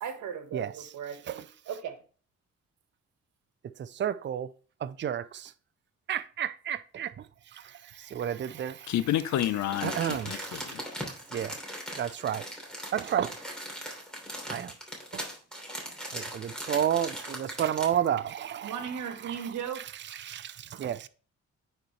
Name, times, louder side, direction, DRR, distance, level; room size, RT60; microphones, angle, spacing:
voice 1, 0.0-2.0 18.6-19.8, right 7 dB, 75° right, 1.4 m, -37 dB
voice 2, 3.8-4.5 4.8-5.5 6.1-7.1 8.1-8.9 9.8-10.5 11.3-11.5 12.0-12.4 12.9-13.4 14.5-14.7 15.1-15.2 16.1-18.7 20.2-21.1, right 10 dB, 40° right, 0.5 m, -31 dB
voice 3, 8.9-10.8 11.9-12.1, left 12 dB, 70° left, 0.7 m, -30 dB
Crumpling crinkling, 9.4-18.0 18.5-18.6, equal, ahead, 3.0 m, -39 dB
9.3 x 4.4 x 3.2 m
cardioid pair, 90°, 30 cm